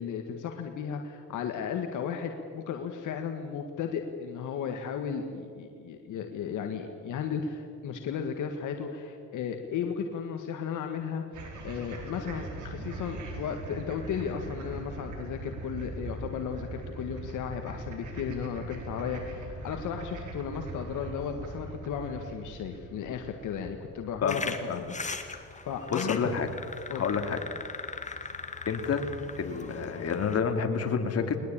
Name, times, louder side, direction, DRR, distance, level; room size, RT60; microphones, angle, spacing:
voice 1, 0.0-11.2 11.6-26.4 26.9-27.0, left 7 dB, 80° left, 5 dB, 1.8 m, -35 dB
sound 1, 11.3-26.7, right 2 dB, 75° right, 4.8 m, -41 dB
sound 2, 24.3-30.4, left 4 dB, 25° left, 2.2 m, -39 dB
voice 2, 25.9-26.5 26.9-27.4 28.7-29.0 29.4-31.4, left 6 dB, 55° left, 5 dB, 2.7 m, -29 dB
21.0 x 20.0 x 8.8 m, 2.4 s
cardioid pair, 90°, 30 cm